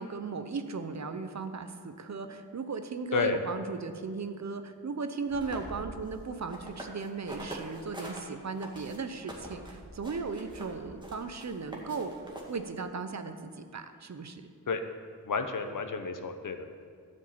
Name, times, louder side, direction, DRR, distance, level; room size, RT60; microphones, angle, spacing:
voice 1, 0.0-12.1 12.5-14.5, right 4 dB, 50° right, 8 dB, 0.8 m, -37 dB
sound 1, 5.3-8.2 8.6-12.8, right 1 dB, 15° right, 2.2 m, -44 dB
voice 2, 15.3-16.7, left 4 dB, 60° left, 7 dB, 1.0 m, -31 dB
13.5 x 5.4 x 8.6 m, 2.1 s
wide cardioid pair, 110°, 36 cm